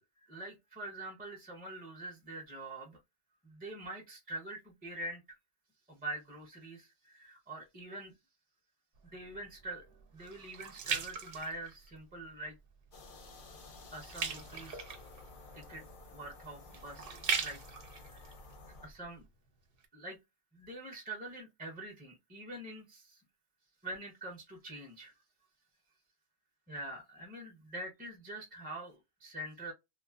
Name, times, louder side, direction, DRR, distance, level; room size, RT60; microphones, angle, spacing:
voice 1, 0.0-3.0 3.4-5.4 5.9-8.1 9.0-9.8 10.1-12.5 13.9-14.8 15.5-15.8 16.1-17.6 17.9-18.3 18.8-19.3 19.9-20.2 20.5-23.2 23.8-25.1 26.7-29.7, right 2 dB, 10° right, 0.5 m, -45 dB
sound 1, 9.0-12.2 12.7-13.0 13.3-19.3 19.8-19.9, right 6 dB, 55° right, 0.7 m, -40 dB
sound 2, 12.9-18.9, left 3 dB, 55° left, 0.6 m, -53 dB
3.1 x 2.0 x 2.3 m
omnidirectional pair, 1.3 m